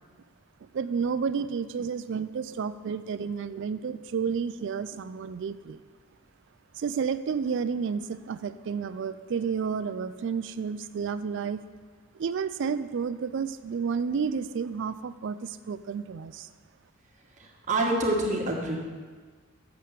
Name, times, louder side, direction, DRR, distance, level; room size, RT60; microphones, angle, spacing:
voice 1, 0.7-5.8 6.8-11.6 12.1-16.5, right 6 dB, 55° right, 13 dB, 0.3 m, -31 dB
voice 2, 17.7-18.8, right 2 dB, 35° right, -1 dB, 1.4 m, -26 dB
7.6 x 6.9 x 6.6 m, 1.5 s
head